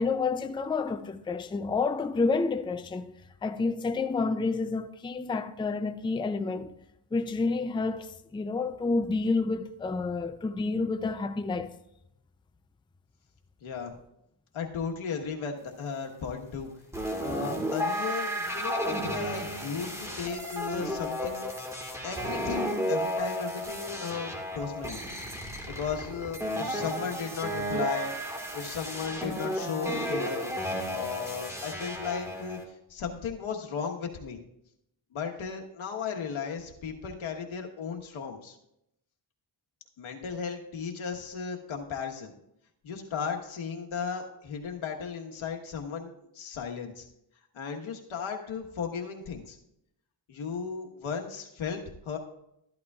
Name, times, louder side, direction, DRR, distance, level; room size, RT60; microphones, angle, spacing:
voice 1, 0.0-3.1 3.4-6.7 7.1-11.7, left 3 dB, 10° left, 0.4 m, -29 dB
voice 2, 13.6-13.9 14.5-16.7 17.2-21.5 22.0-25.0 25.7-28.1 28.5-30.5 30.8-34.4 35.1-38.6 40.0-42.3 42.8-47.1 47.5-49.6 50.3-52.2, left 6 dB, 90° left, 1.4 m, -35 dB
sound 1, 16.9-32.6, equal, 5° right, 1.7 m, -33 dB
13.0 x 11.5 x 2.4 m
wide cardioid pair, 105°, 47 cm